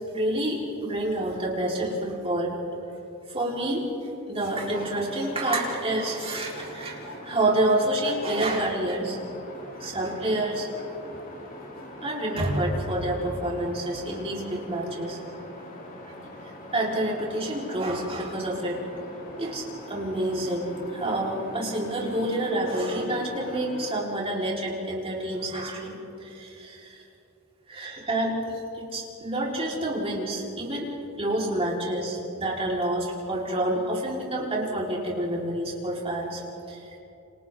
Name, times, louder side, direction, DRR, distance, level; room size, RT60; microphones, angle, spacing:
voice 1, 0.1-2.5 3.3-3.9 4.3-9.2 9.8-10.8 12.0-15.2 16.7-18.8 19.4-27.0 27.7-28.4 28.7-30.9 31.2-36.4 36.7-36.8, right 1 dB, 25° right, -4 dB, 4.5 m, -28 dB
sound 1, 4.4-24.0, left 1 dB, 40° left, 2.8 m, -43 dB
29.0 x 27.0 x 3.9 m, 2.8 s
head